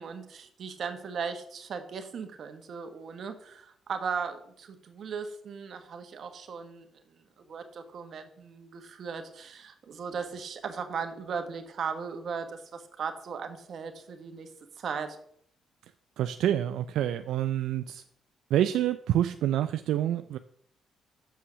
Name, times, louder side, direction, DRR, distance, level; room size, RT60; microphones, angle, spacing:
voice 1, 0.0-6.8 7.4-14.5 14.8-15.2, right 6 dB, 60° right, 7 dB, 1.3 m, -37 dB
voice 2, 16.2-18.0 18.5-20.4, right 11 dB, 80° right, 10 dB, 0.3 m, -27 dB
7.1 x 5.7 x 6.1 m, 0.65 s
cardioid pair, 90°, 0 cm